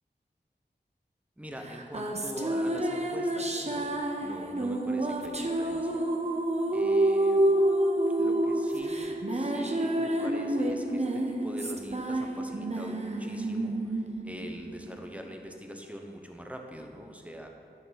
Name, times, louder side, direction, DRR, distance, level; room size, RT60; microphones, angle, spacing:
voice 1, 1.4-6.1 6.7-7.4 8.2-17.5, equal, 5° right, 3 dB, 0.9 m, -43 dB
sound 1, 1.6-15.3, right 1 dB, 35° right, 0.8 m, -29 dB
9.6 x 4.0 x 6.0 m, 2.4 s
wide cardioid pair, 40°, 19 cm